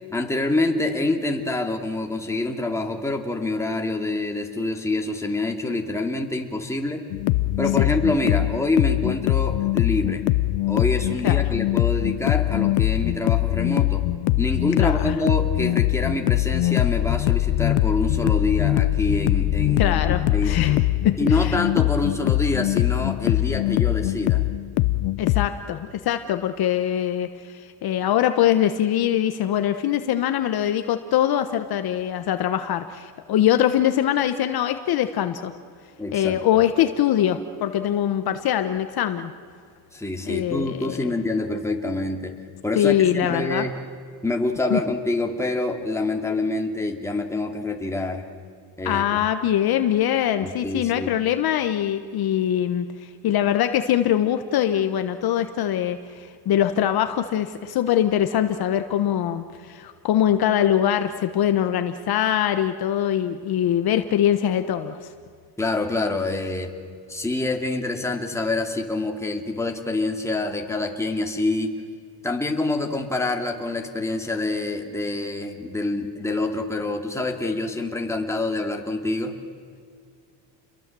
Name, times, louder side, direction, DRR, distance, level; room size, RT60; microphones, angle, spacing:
voice 1, 0.1-7.0 7.6-10.2 10.7-14.0 14.4-20.5 21.2-24.4 36.0-36.4 39.9-42.4 42.6-43.7 44.2-48.2 48.8-49.2 50.4-51.1 65.6-66.7 67.1-71.7 72.2-79.4, left 2 dB, 5° left, 2 dB, 2.6 m, -26 dB
sound 1, 7.1-25.5, left 17 dB, 70° left, 0.9 m, -22 dB
voice 2, 14.8-15.1 19.8-20.8 21.0-21.6 25.2-35.5 36.1-39.3 40.3-41.1 42.7-43.6 44.7-44.8 48.8-65.1, left 11 dB, 50° left, 8 dB, 1.3 m, -23 dB
30.0 x 22.5 x 7.7 m, 2.2 s
cardioid pair, 135°, 48 cm